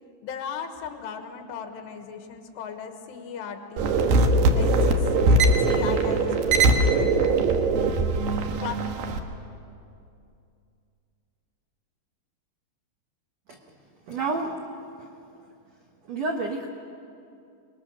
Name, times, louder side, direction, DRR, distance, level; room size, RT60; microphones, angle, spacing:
voice 1, 0.2-4.0 4.6-7.4 8.6-9.1, left 6 dB, 75° left, 5 dB, 3.4 m, -37 dB
sound 1, 3.8-9.2, right 2 dB, 65° right, 2.5 m, -21 dB
voice 2, 14.1-14.6 16.1-16.7, right 3 dB, 85° right, 1 dB, 1.5 m, -29 dB
24.0 x 21.0 x 6.5 m, 2.5 s
omnidirectional pair, 5.0 m